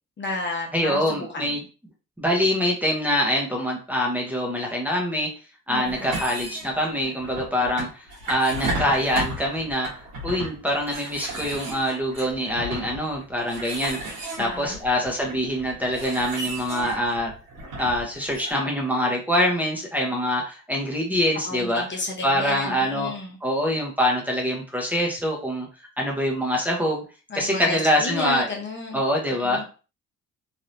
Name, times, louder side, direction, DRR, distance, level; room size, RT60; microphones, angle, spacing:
voice 1, 0.2-1.6 5.7-6.1 14.4-14.8 21.4-23.4 27.3-29.0 29.4-29.6, left 2 dB, 40° left, 1 dB, 0.9 m, -32 dB
voice 2, 0.7-1.6 2.2-5.3 5.7-9.9 10.2-17.3 17.8-21.8 22.2-23.1 23.4-25.7 26.0-27.0 27.3-28.5 28.9-29.6, equal, 5° right, -1 dB, 0.9 m, -24 dB
sound 1, 5.8-18.5, right 2 dB, 85° right, 1.5 m, -34 dB
3.3 x 2.7 x 2.6 m, 0.35 s
cardioid pair, 90°, 30 cm